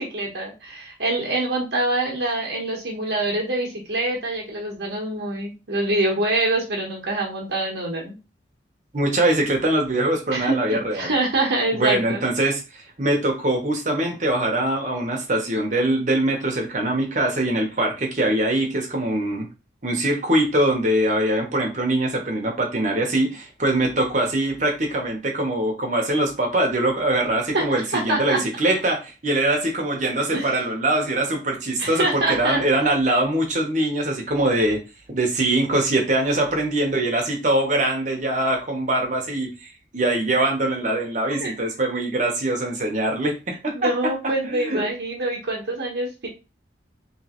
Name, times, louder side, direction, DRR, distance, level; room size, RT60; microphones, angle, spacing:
voice 1, 0.0-8.2 10.3-12.2 27.5-28.4 30.3-30.6 31.8-32.6 41.4-41.5 43.7-46.3, right 2 dB, 70° right, -2 dB, 1.1 m, -25 dB
voice 2, 8.9-11.1 11.7-19.5 19.8-34.8 35.1-43.9 44.4-44.9, right 1 dB, 45° right, 1 dB, 1.0 m, -23 dB
3.1 x 3.1 x 3.0 m, 0.29 s
head